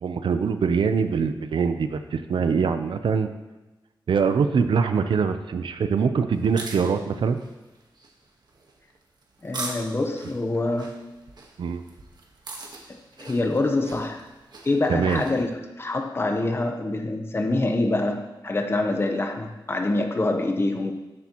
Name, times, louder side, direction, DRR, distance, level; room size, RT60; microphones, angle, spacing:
voice 1, 0.0-3.3 4.1-7.4 11.6-11.8 14.9-15.2, right 5 dB, 90° right, 9 dB, 0.7 m, -23 dB
sound 1, 6.3-15.4, right 2 dB, 60° right, 1.4 m, -41 dB
voice 2, 9.4-11.0 12.9-14.2 14.6-20.9, left 2 dB, 30° left, 5 dB, 1.0 m, -25 dB
13.5 x 7.8 x 3.0 m, 1.1 s
wide cardioid pair, 135°, 8 cm